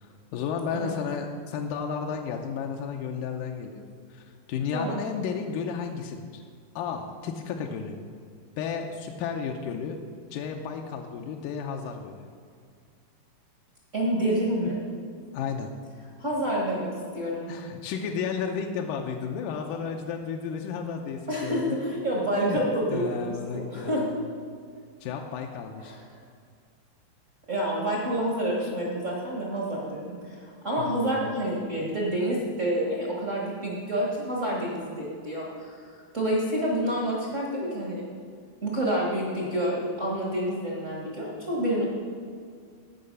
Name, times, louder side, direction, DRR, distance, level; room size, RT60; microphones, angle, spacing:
voice 1, 0.0-3.8 4.1-6.4 6.8-8.0 8.6-10.0 10.3-12.2 15.3-15.7 17.5-21.8 22.3-22.6 22.9-24.1 25.0-26.0 28.6-28.7 30.8-31.1, left 6 dB, 80° left, 2 dB, 2.0 m, -33 dB
voice 2, 13.9-14.8 16.2-17.5 21.3-24.0 25.9-26.0 27.5-35.8 36.1-38.0 38.6-41.8, right 1 dB, 50° right, -4 dB, 0.9 m, -28 dB
15.5 x 5.7 x 5.4 m, 2.1 s
omnidirectional pair, 4.3 m